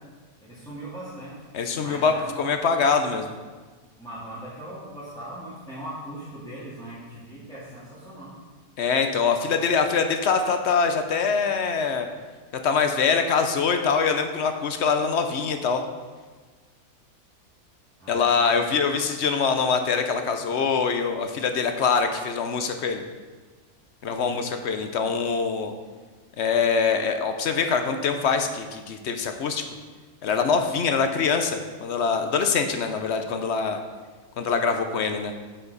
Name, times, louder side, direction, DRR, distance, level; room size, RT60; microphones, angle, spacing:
voice 1, 0.4-1.5 1.8-2.5 4.0-8.4 18.0-19.1 24.1-24.4 30.9-31.2, right 1 dB, 5° left, -11 dB, 1.9 m, -40 dB
voice 2, 1.5-2.1 2.4-3.3 8.8-12.1 12.6-15.8 18.1-23.0 24.0-25.7 26.4-29.7 30.2-33.8 34.4-35.3, left 5 dB, 60° left, 6 dB, 0.8 m, -24 dB
9.6 x 5.9 x 4.0 m, 1.4 s
omnidirectional pair, 1.5 m